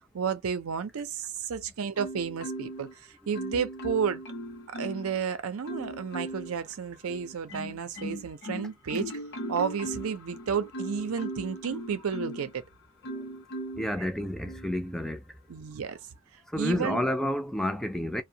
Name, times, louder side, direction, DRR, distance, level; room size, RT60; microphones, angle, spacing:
voice 1, 0.1-4.2 4.7-9.1 9.5-12.6 15.5-16.0 16.5-17.0, right 6 dB, 90° right, 0.5 m, -32 dB
Marimba xylophone, 2.0-2.9 3.3-5.2 5.6-6.5 7.1-12.5 13.0-13.9 14.5-14.7, right 1 dB, 55° left, 0.7 m, -38 dB
voice 2, 13.8-15.2 16.5-18.2, left 1 dB, ahead, 0.3 m, -30 dB
2.6 x 2.1 x 2.7 m
head